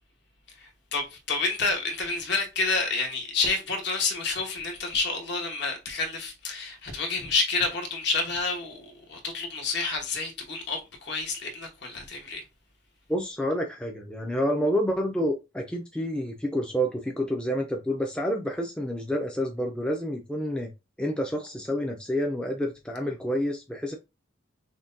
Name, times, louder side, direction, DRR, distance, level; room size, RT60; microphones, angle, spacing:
voice 1, 0.6-12.4, left 3 dB, 55° left, 1.1 m, -29 dB
voice 2, 13.1-20.7 21.0-23.9, equal, 5° left, 0.5 m, -28 dB
5.9 x 2.2 x 2.6 m
head